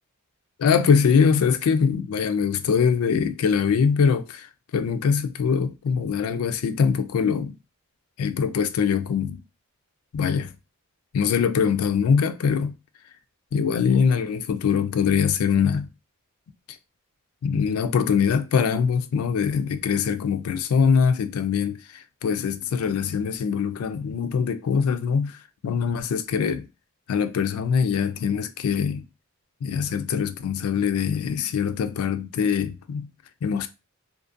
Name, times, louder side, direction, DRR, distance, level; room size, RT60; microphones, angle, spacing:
voice 1, 0.6-7.6 8.2-9.4 10.1-10.5 11.1-12.8 13.5-15.9 17.4-25.4 25.6-26.7 27.1-29.1 29.6-33.1 33.4-33.7, left 6 dB, 90° left, 0.4 m, -23 dB
2.5 x 2.5 x 2.5 m
head